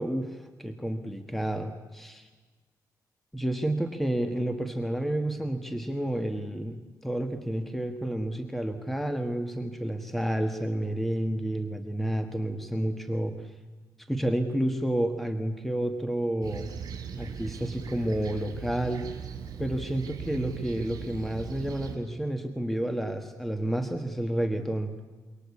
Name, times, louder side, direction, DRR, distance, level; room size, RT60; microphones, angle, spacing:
voice 1, 0.0-2.3 3.3-13.5 14.0-16.7 17.2-19.1 19.6-24.9, right 1 dB, 5° left, 7 dB, 1.5 m, -30 dB
Fixed-wing aircraft airplane, 16.4-22.0, right 8 dB, 65° right, 6.1 m, -39 dB
27.5 x 24.0 x 8.4 m, 1.3 s
wide cardioid pair, 145°, 7 cm